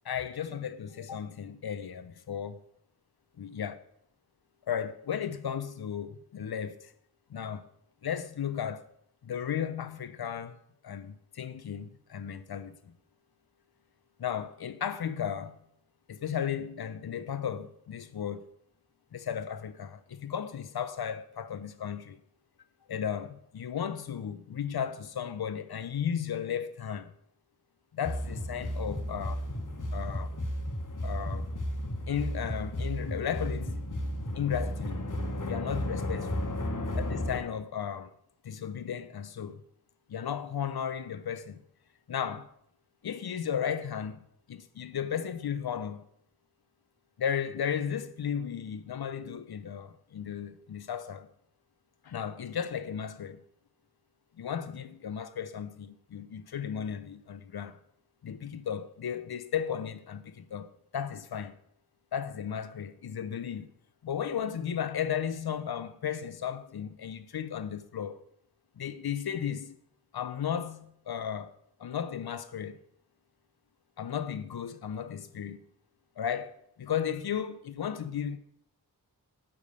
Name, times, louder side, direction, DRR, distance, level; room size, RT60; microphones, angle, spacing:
voice 1, 0.0-2.6 3.4-3.8 4.7-6.9 7.3-7.6 8.0-8.8 9.2-10.6 10.8-12.9 14.2-15.5 16.1-18.5 19.1-22.2 22.9-27.1 27.9-29.5 29.9-30.3 31.0-31.5 32.1-33.8 34.4-35.0 35.5-36.6 36.9-38.1 38.4-39.6 40.1-41.6 42.1-42.5 43.0-46.0 47.2-51.3 52.0-53.4 54.4-57.8 58.2-60.7 60.9-61.5 62.1-63.7 64.0-68.2 68.8-69.8 70.1-71.5 71.8-72.8 74.0-75.6 76.2-78.4, left 8 dB, 70° left, 0.7 m, -35 dB
sound 1, 28.0-37.4, left 1 dB, 50° left, 1.4 m, -33 dB
9.7 x 3.7 x 6.7 m
wide cardioid pair, 60°, 38 cm